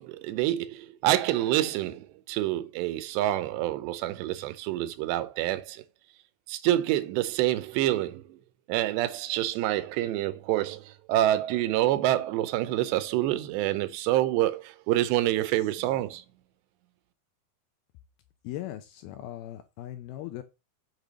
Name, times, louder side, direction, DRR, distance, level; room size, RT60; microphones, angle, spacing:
voice 1, 0.0-5.8 6.5-8.4 8.7-16.2, right 14 dB, 80° right, 2.8 m, -27 dB
voice 2, 18.4-20.4, left 13 dB, 80° left, 2.3 m, -39 dB
6.8 x 5.7 x 6.1 m
omnidirectional pair, 5.0 m